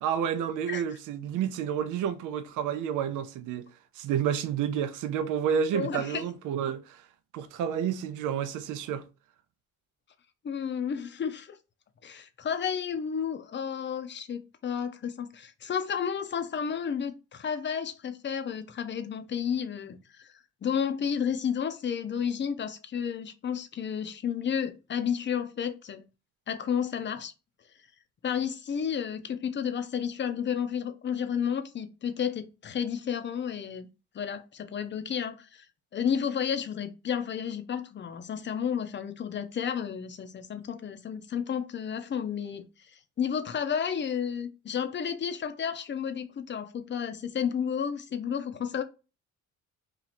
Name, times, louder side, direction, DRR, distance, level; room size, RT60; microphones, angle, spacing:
voice 1, 0.0-3.6 4.0-7.0 7.3-9.1, right 8 dB, 85° right, 0.6 m, -30 dB
voice 2, 5.7-6.2 10.4-11.6 12.0-26.0 26.5-27.3 28.2-33.9 34.1-35.7 35.9-42.6 43.2-48.8, left 7 dB, 40° left, 0.6 m, -32 dB
2.9 x 2.4 x 4.1 m
cardioid pair, 90°, 30 cm